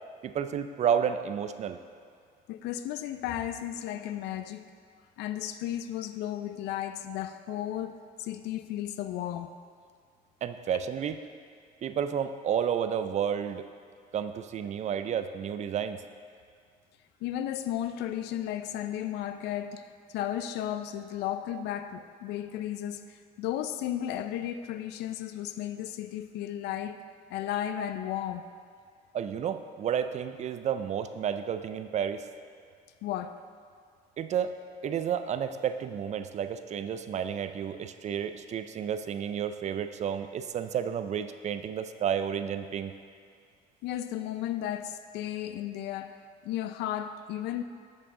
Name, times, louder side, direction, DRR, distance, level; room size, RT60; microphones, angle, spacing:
voice 1, 0.2-1.8 10.4-11.2 11.8-13.7 14.1-16.0 29.1-32.2 34.2-34.5 34.8-42.9, right 8 dB, 45° right, 10 dB, 0.4 m, -31 dB
voice 2, 2.5-4.7 5.2-7.9 8.2-9.5 17.2-27.0 27.3-28.5 33.0-33.4 43.8-47.6, left 11 dB, 85° left, 10 dB, 0.4 m, -34 dB
8.0 x 6.5 x 3.7 m, 2.2 s
cardioid pair, 110°, 17 cm